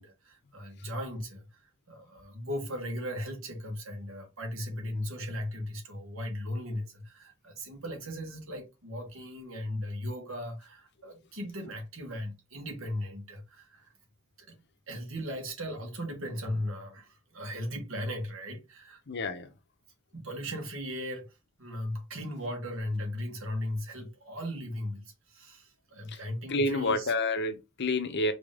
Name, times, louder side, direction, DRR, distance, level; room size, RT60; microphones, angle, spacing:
voice 1, 0.0-13.9 14.4-14.6 14.9-19.0 20.1-27.1, left 1 dB, 85° right, 1.8 m, -37 dB
voice 2, 19.1-19.5 26.1-26.2 26.5-28.3, left 2 dB, 55° left, 0.8 m, -29 dB
5.0 x 2.9 x 3.6 m
head